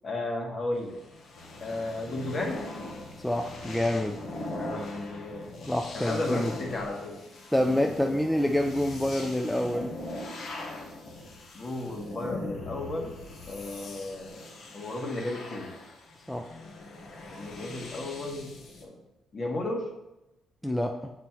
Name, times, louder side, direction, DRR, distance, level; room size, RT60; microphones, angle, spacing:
voice 1, 0.0-1.0 1.6-2.6 4.5-7.2 7.6-8.2 11.5-13.1 13.5-15.7 17.3-18.5 18.8-19.0 19.3-19.9, left 2 dB, 40° left, 1 dB, 1.6 m, -34 dB
sound 1, 0.7-18.8, left 2 dB, 60° left, 1.1 m, -41 dB
voice 2, 3.2-4.2 5.7-6.6 7.5-10.0 16.3-16.5 20.6-21.1, left 1 dB, 5° left, 3 dB, 0.5 m, -27 dB
7.4 x 4.2 x 4.5 m, 0.95 s
cardioid pair, 90°, 0 cm